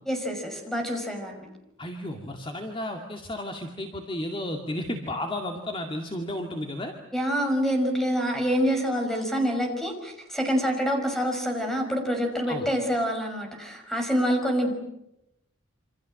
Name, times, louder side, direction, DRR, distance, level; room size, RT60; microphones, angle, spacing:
voice 1, 0.1-1.5 7.1-14.7, equal, ahead, 3 dB, 5.8 m, -26 dB
voice 2, 1.8-6.9 12.5-12.7, left 1 dB, 25° left, 3 dB, 2.2 m, -33 dB
28.0 x 26.5 x 7.7 m, 0.83 s
head